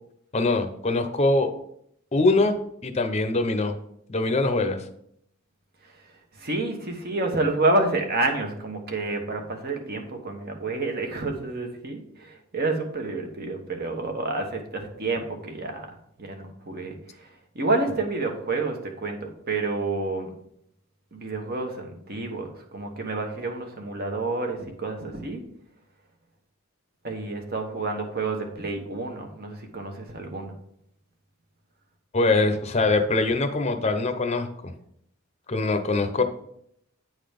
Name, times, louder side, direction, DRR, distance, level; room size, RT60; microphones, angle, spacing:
voice 1, 0.3-1.5 2.1-2.5 2.8-3.8 4.1-4.8 32.1-34.7 35.5-36.2, left 2 dB, 30° left, 6 dB, 0.7 m, -23 dB
voice 2, 6.3-15.9 16.2-17.3 17.5-20.3 21.1-25.4 27.0-30.5, right 2 dB, 45° right, 3 dB, 1.3 m, -29 dB
9.2 x 4.0 x 5.1 m, 0.72 s
head